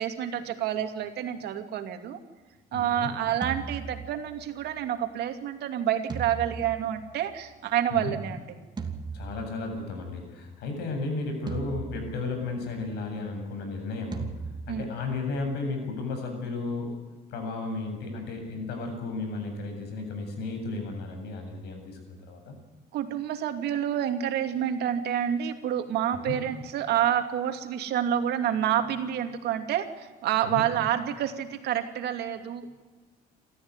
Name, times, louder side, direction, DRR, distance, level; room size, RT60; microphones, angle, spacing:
voice 1, 0.0-2.2 2.7-8.4 14.7-14.8 22.9-32.8, right 10 dB, 75° right, 6 dB, 2.7 m, -28 dB
voice 2, 2.7-3.1 7.9-8.1 9.1-14.3 14.7-16.9 17.3-22.5 26.1-26.4 30.4-30.6, left 3 dB, 80° left, 4 dB, 7.9 m, -34 dB
sound 1, 3.4-4.6 6.1-7.6 8.8-10.0 11.5-12.7 14.1-15.2, right 5 dB, 25° right, 2.7 m, -38 dB
27.5 x 14.0 x 9.8 m, 1.3 s
cardioid pair, 110°, 17 cm